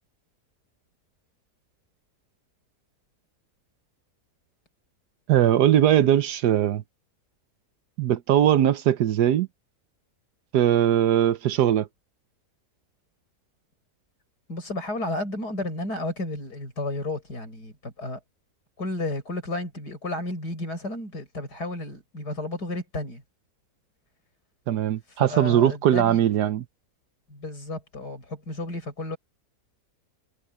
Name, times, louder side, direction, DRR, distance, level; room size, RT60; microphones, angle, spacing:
voice 1, 5.3-6.8 8.0-9.5 10.5-11.9 24.7-26.6, right 11 dB, 75° right, 1.3 m, -20 dB
voice 2, 14.5-18.2 18.8-23.2 25.1-26.2 27.3-29.2, left 2 dB, 75° left, 7.9 m, -32 dB
omnidirectional pair, 1.8 m